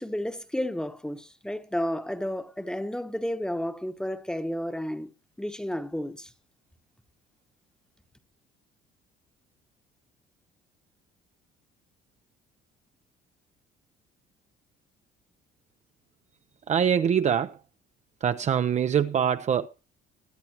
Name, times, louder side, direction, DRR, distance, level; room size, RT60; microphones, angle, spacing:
voice 1, 0.0-5.1 5.4-6.3, equal, 5° left, 1.1 m, -32 dB
voice 2, 16.7-17.6 18.2-19.7, right 8 dB, 45° right, 0.7 m, -24 dB
22.0 x 8.4 x 3.0 m
cardioid pair, 110°, 17 cm